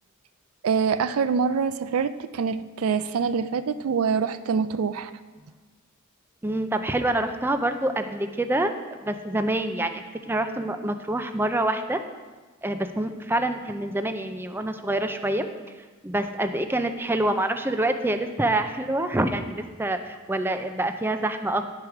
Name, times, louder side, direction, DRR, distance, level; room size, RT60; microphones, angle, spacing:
voice 1, 0.6-5.1, right 6 dB, 80° right, 12 dB, 0.4 m, -25 dB
voice 2, 6.4-8.7 9.0-12.0 12.6-15.5 16.0-21.6, right 1 dB, 10° right, 7 dB, 0.4 m, -26 dB
10.0 x 4.8 x 5.9 m, 1.3 s
head